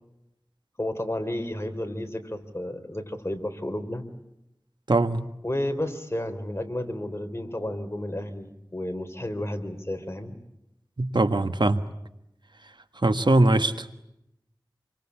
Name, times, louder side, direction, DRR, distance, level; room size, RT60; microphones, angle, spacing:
voice 1, 0.8-4.0 5.4-10.4, left 1 dB, 30° left, 6 dB, 4.0 m, -32 dB
voice 2, 4.9-5.3 11.0-11.8 13.0-14.0, right 2 dB, 70° right, 10 dB, 1.5 m, -21 dB
28.0 x 24.0 x 8.6 m, 0.83 s
wide cardioid pair, 45°, 8 cm